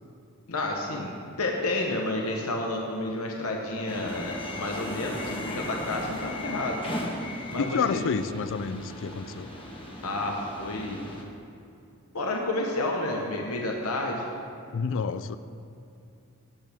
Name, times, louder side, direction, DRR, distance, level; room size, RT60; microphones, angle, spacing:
voice 1, 0.5-6.8 7.5-8.0 10.0-11.1 12.1-14.3, left 2 dB, 75° left, 0 dB, 1.0 m, -30 dB
sound 1, 3.9-11.2, left 1 dB, 25° left, 1.3 m, -37 dB
voice 2, 7.6-9.5 14.7-15.4, left 5 dB, 60° left, 13 dB, 0.4 m, -29 dB
17.0 x 8.3 x 3.5 m, 2.6 s
head